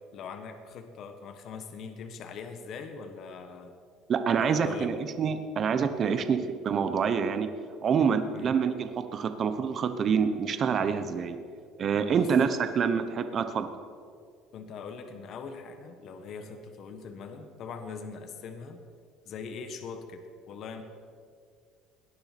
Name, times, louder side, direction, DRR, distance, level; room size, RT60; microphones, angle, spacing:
voice 1, 0.1-3.7 4.4-4.9 6.0-6.3 8.3-8.5 12.2-12.3 14.5-18.8 19.2-20.8, left 5 dB, 45° left, 6 dB, 1.3 m, -41 dB
voice 2, 4.1-6.4 6.6-7.5 7.8-11.4 11.8-12.5 12.7-13.7, right 6 dB, 30° right, 9 dB, 0.9 m, -26 dB
18.5 x 10.5 x 6.0 m, 2.2 s
cardioid pair, 160°, 0 cm